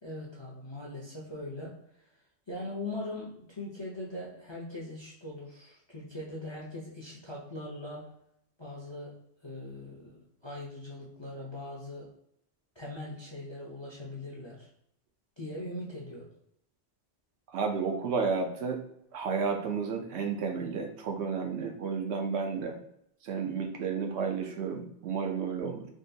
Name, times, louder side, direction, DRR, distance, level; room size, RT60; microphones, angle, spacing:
voice 1, 0.0-1.8 2.5-8.1 8.6-9.1 9.4-12.1 12.8-14.7 15.4-16.3, left 1 dB, 35° left, -4 dB, 0.5 m, -41 dB
voice 2, 17.5-18.8 19.1-22.8 23.2-25.9, right 5 dB, 70° right, 3 dB, 0.8 m, -32 dB
3.7 x 2.4 x 2.6 m, 0.72 s
omnidirectional pair, 1.2 m